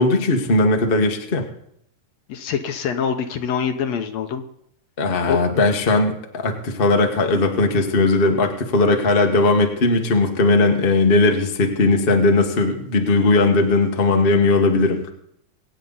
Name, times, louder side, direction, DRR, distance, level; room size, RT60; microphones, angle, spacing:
voice 1, 0.0-1.5 5.0-15.0, left 2 dB, 35° left, 3 dB, 0.8 m, -18 dB
voice 2, 2.3-4.4 5.3-5.4, left 7 dB, 70° left, 7 dB, 1.9 m, -24 dB
23.0 x 9.1 x 4.0 m, 0.72 s
omnidirectional pair, 3.5 m